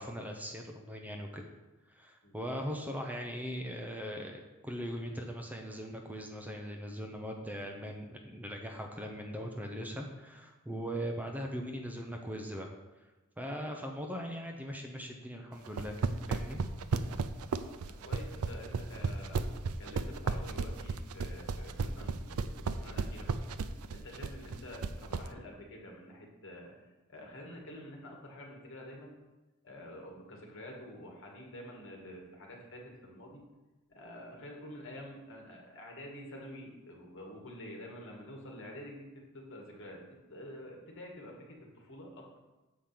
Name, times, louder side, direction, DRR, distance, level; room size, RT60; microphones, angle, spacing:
voice 1, 0.0-1.5 1.9-12.7 13.4-16.0 16.3-16.6, equal, 5° right, 2 dB, 0.6 m, -40 dB
sound 1, 15.7-25.3, right 4 dB, 80° right, 0.5 m, -33 dB
voice 2, 17.9-19.4 19.8-22.4 22.7-23.4 23.9-29.2 29.6-33.4 33.9-40.0 40.3-42.4, left 1 dB, 60° left, 0 dB, 1.8 m, -48 dB
7.2 x 4.9 x 5.9 m, 1.1 s
head